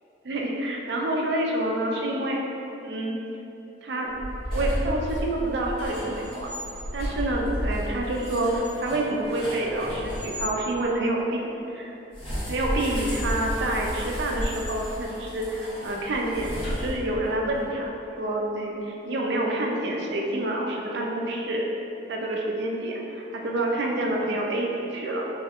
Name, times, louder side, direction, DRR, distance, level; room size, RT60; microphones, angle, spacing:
voice 1, 0.2-2.4 2.8-3.2 3.8-4.1 4.5-6.5 6.9-11.9 12.5-21.6 22.1-25.3, right 1 dB, 60° right, -1 dB, 0.4 m, -28 dB
sound 1, 4.1-10.5 12.1-17.4, equal, 30° left, 1.0 m, -32 dB
3.7 x 2.2 x 3.5 m, 2.8 s
head